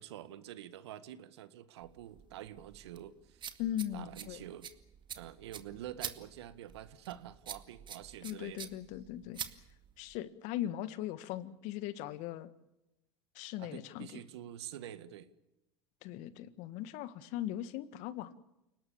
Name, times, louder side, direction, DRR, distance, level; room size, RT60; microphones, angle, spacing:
voice 1, 0.0-3.5 3.9-4.7 5.1-8.7 13.6-15.3, right 12 dB, 75° right, 13 dB, 1.7 m, -47 dB
sound 1, 1.8-10.2, right 8 dB, 35° right, 2.2 m, -47 dB
voice 2, 3.6-4.4 8.2-9.4 10.0-12.5 13.4-14.2 16.0-18.4, left 12 dB, 60° left, 14 dB, 1.7 m, -39 dB
29.5 x 19.0 x 7.2 m, 0.90 s
hypercardioid pair, 80°, 14 cm